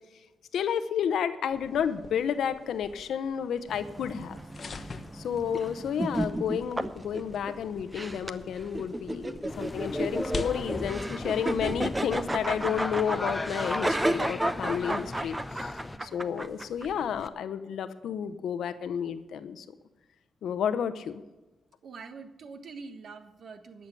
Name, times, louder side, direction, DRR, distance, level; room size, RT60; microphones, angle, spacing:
voice 1, 0.5-4.4 5.1-15.7 16.0-19.7 20.4-21.2, left 8 dB, 80° left, 12 dB, 0.8 m, -31 dB
sound 1, 1.5-12.1, left 5 dB, 50° left, 1.0 m, -46 dB
sound 2, 3.7-17.3, right 1 dB, 15° right, 0.8 m, -33 dB
sound 3, 9.5-16.0, left 2 dB, 20° left, 0.6 m, -37 dB
voice 2, 15.9-16.4 21.8-23.9, right 4 dB, 65° right, 10 dB, 1.3 m, -45 dB
11.5 x 6.8 x 8.2 m, 1.1 s
cardioid pair, 60°, 0 cm